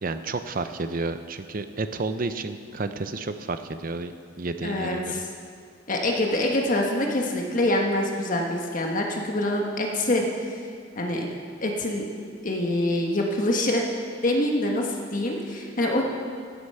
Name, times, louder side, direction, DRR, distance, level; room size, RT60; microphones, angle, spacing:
voice 1, 0.0-5.2, right 3 dB, 50° right, 9 dB, 0.7 m, -31 dB
voice 2, 4.6-5.2 5.9-10.6 11.0-11.3 11.6-12.1 12.4-13.9 14.2-16.0, left 1 dB, 45° left, 0 dB, 1.4 m, -25 dB
16.5 x 8.2 x 5.7 m, 2.1 s
head